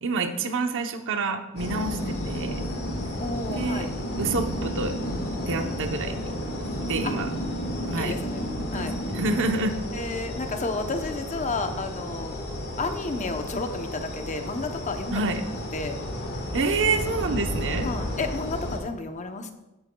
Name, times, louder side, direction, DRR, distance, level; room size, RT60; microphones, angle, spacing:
voice 1, 0.0-2.6 3.5-3.9 4.2-4.9 5.5-6.3 6.8-7.3 7.9-8.1 8.6-9.8 15.1-15.4 16.5-17.9, right 3 dB, 60° right, 6 dB, 0.8 m, -28 dB
sound 1, 1.6-18.8, equal, 50° left, 1.6 m, -32 dB
voice 2, 3.2-3.9 7.0-7.2 8.0-8.4 8.7-8.9 9.9-12.4 12.8-15.2 15.7-16.0 17.8-19.5, left 3 dB, 35° left, 6 dB, 0.8 m, -31 dB
16.0 x 8.9 x 2.3 m, 1.0 s
head